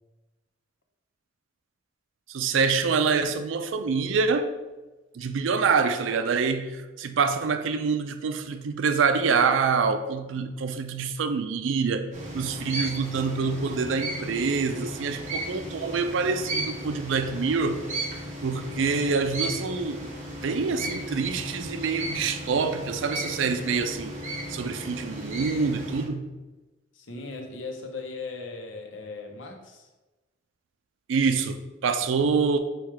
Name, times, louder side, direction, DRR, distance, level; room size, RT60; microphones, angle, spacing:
voice 1, 2.3-4.5 5.1-17.8 18.4-20.1 20.4-24.1 24.5-26.3 31.1-32.6, right 5 dB, 90° right, 0.4 m, -26 dB
sound 1, 12.1-26.0, right 1 dB, 40° right, 0.9 m, -35 dB
voice 2, 26.9-29.9 32.0-32.2, left 3 dB, 75° left, 0.7 m, -38 dB
4.4 x 2.3 x 4.7 m
head